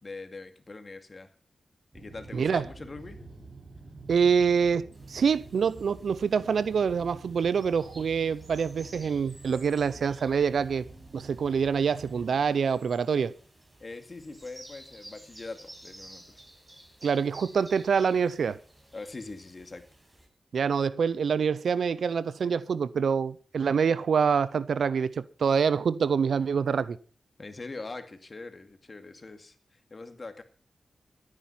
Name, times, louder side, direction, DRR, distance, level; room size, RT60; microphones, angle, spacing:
voice 1, 0.0-1.3 1.9-3.2 13.8-16.4 18.9-19.8 27.4-30.4, left 3 dB, 45° left, 2.3 m, -42 dB
sound 1, 1.9-12.3, right 3 dB, 40° right, 4.6 m, -48 dB
voice 2, 2.3-2.6 4.1-10.9 11.1-13.3 17.0-18.6 20.5-27.0, right 6 dB, 85° right, 0.6 m, -26 dB
sound 2, 4.9-20.3, right 1 dB, 25° right, 7.4 m, -53 dB
15.0 x 9.8 x 5.7 m
cardioid pair, 55°, 0 cm